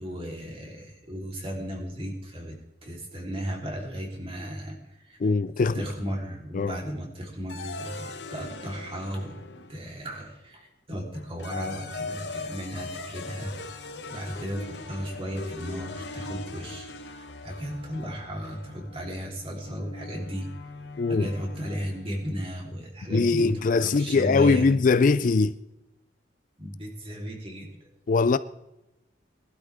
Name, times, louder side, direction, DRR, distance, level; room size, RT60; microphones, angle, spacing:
voice 1, 0.0-5.2 5.6-9.4 9.7-20.5 21.1-24.7 26.6-27.7, equal, 30° right, 3.6 m, -35 dB
voice 2, 5.2-5.8 6.5-6.8 21.0-21.3 23.1-25.5 28.1-28.4, left 4 dB, 45° left, 0.4 m, -21 dB
sound 1, 7.5-10.1 11.1-22.3, left 3 dB, 70° left, 1.2 m, -40 dB
19.5 x 12.0 x 3.5 m
head